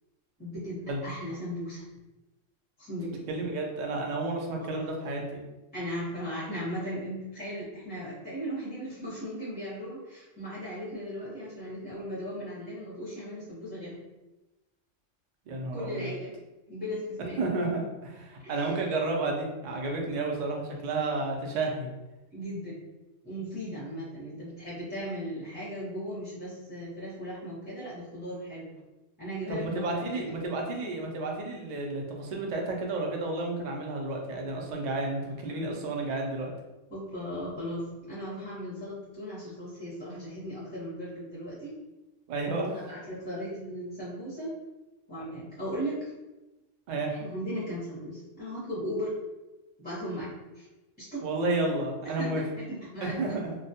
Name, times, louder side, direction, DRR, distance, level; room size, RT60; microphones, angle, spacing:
voice 1, 0.4-1.8 2.8-3.3 4.6-4.8 5.7-14.0 15.7-16.4 16.7-17.4 18.4-18.8 22.3-22.8 23.2-28.7 29.2-30.3 36.9-41.7 42.6-44.6 45.1-46.1 47.1-49.1 49.8-50.7 51.0-51.6 52.2-53.4, equal, 10° left, -9 dB, 0.6 m, -37 dB
voice 2, 3.3-5.4 15.5-16.1 17.4-21.9 29.5-36.5 42.3-42.9 46.9-47.1 51.2-52.4 53.0-53.6, right 2 dB, 75° right, 0 dB, 0.4 m, -31 dB
2.2 x 2.1 x 2.7 m, 1.0 s
omnidirectional pair, 1.3 m